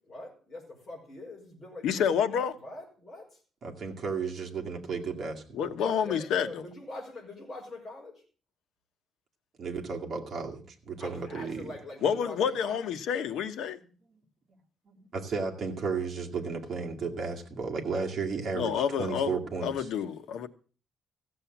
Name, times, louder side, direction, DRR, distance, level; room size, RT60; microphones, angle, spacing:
voice 1, 0.1-1.9 2.3-3.3 5.8-8.1 11.0-12.9, left 1 dB, 25° left, 5.2 m, -43 dB
voice 2, 1.8-2.5 5.5-6.6 12.0-13.8 18.5-19.4 19.6-20.5, left 7 dB, 75° left, 1.1 m, -28 dB
voice 3, 3.6-5.7 9.6-11.7 14.9-19.9, right 5 dB, 40° right, 2.3 m, -34 dB
15.5 x 7.7 x 7.3 m
cardioid pair, 170°, 0 cm